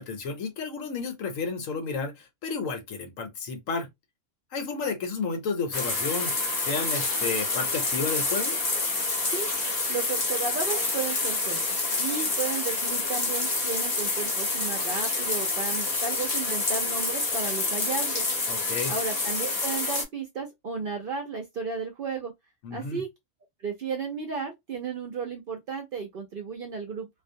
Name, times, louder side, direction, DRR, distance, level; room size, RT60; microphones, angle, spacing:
voice 1, 0.0-3.9 4.5-6.3 6.6-8.6 18.5-18.9 22.6-23.0, left 4 dB, 80° left, 1.1 m, -32 dB
sound 1, 5.7-20.0, left 3 dB, 40° left, 0.6 m, -28 dB
voice 2, 9.3-11.6 12.0-18.2 18.9-22.3 22.7-23.1 23.6-27.1, right 5 dB, 60° right, 0.6 m, -34 dB
2.5 x 2.1 x 2.6 m
omnidirectional pair, 1.4 m